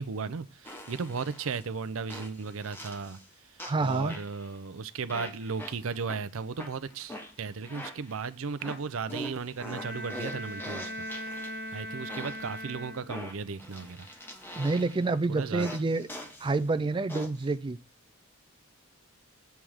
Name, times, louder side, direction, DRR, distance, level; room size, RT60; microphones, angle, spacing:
voice 1, 0.0-3.2 3.8-11.3 11.5-14.1 15.3-15.7, right 5 dB, 70° right, 0.5 m, -35 dB
sound 1, 0.6-1.6 2.1-3.2 3.6-4.6 5.1-6.2 6.6-8.2 8.6-11.7 12.1-12.6 13.1-15.1 15.6-16.6 17.1-17.5, equal, 10° left, 1.0 m, -43 dB
voice 2, 3.6-4.2 14.5-16.1 16.4-17.8, right 3 dB, 25° right, 0.4 m, -28 dB
Bowed string instrument, 9.7-13.4, equal, 80° left, 2.6 m, -39 dB
7.4 x 3.5 x 6.3 m
head